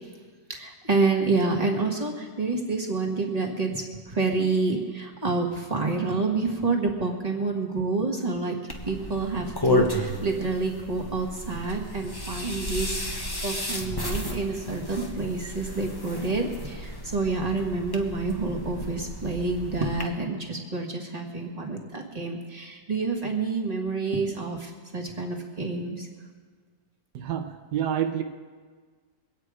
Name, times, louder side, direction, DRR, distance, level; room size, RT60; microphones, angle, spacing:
voice 1, 0.5-8.6 8.8-26.1, right 3 dB, 25° right, 0 dB, 1.6 m, -28 dB
sound 1, 8.7-20.1, left 1 dB, 15° left, 1.1 m, -32 dB
voice 2, 27.1-28.2, right 9 dB, 80° right, 6 dB, 1.4 m, -28 dB
23.0 x 8.9 x 4.9 m, 1.5 s
omnidirectional pair, 1.8 m